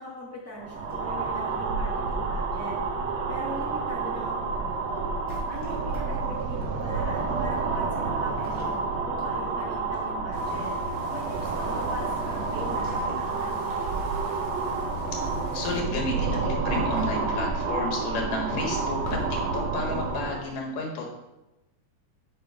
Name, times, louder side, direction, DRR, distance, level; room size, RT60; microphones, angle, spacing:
voice 1, 0.0-2.8 3.3-5.1 5.5-10.7 11.1-14.0, left 1 dB, 5° right, -7 dB, 2.2 m, -41 dB
sound 1, 0.6-20.5, right 4 dB, 70° right, 1.7 m, -29 dB
sound 2, 0.8-1.6 2.8-3.1 5.1-6.8 8.2-9.6 9.9-10.2 12.7-13.4 13.7-14.3 16.7-17.3 18.5-19.5, equal, 40° right, 2.2 m, -40 dB
sound 3, 10.3-15.8, left 6 dB, 65° left, 1.7 m, -41 dB
voice 2, 15.5-19.0 19.3-21.1, left 3 dB, 85° left, 0 dB, 3.1 m, -32 dB
8.6 x 5.5 x 4.7 m, 0.98 s
omnidirectional pair, 3.7 m